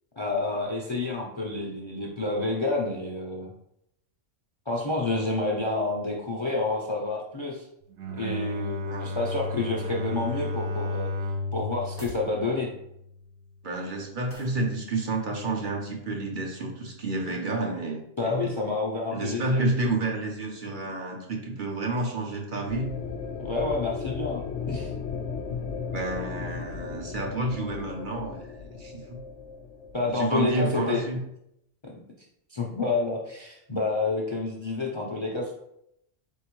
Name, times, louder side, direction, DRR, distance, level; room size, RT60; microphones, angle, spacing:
voice 1, 0.2-3.5 4.7-7.7 8.1-11.1 11.5-12.7 18.2-19.6 23.4-24.9 29.9-31.2 31.8-32.0 32.5-35.6, left 3 dB, 35° left, -2 dB, 0.5 m, -29 dB
Bowed string instrument, 7.9-13.2, left 2 dB, 80° right, 1.0 m, -33 dB
sound 1, 11.9-12.3 14.3-14.6, equal, 15° right, 0.5 m, -45 dB
voice 2, 13.6-18.5 19.1-22.9 25.9-29.2 30.1-31.2, right 2 dB, 50° right, 0 dB, 0.8 m, -30 dB
sound 2, 22.7-30.8, left 5 dB, 90° left, 0.9 m, -36 dB
4.2 x 3.6 x 3.0 m, 0.78 s
omnidirectional pair, 1.2 m